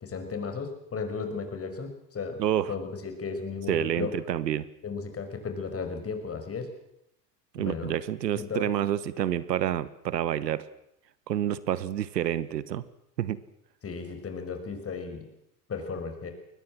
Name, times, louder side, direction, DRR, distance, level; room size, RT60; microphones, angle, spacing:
voice 1, 0.0-2.4 2.7-4.1 4.8-6.7 7.6-7.9 8.4-8.7 13.8-15.3 15.7-16.3, left 5 dB, 30° left, 7 dB, 5.8 m, -35 dB
voice 2, 2.4-2.7 3.7-4.7 7.5-10.6 11.3-12.8 13.2-13.4, right 11 dB, 85° right, 18 dB, 1.2 m, -28 dB
22.5 x 19.5 x 7.6 m, 0.79 s
hypercardioid pair, 85°, 48 cm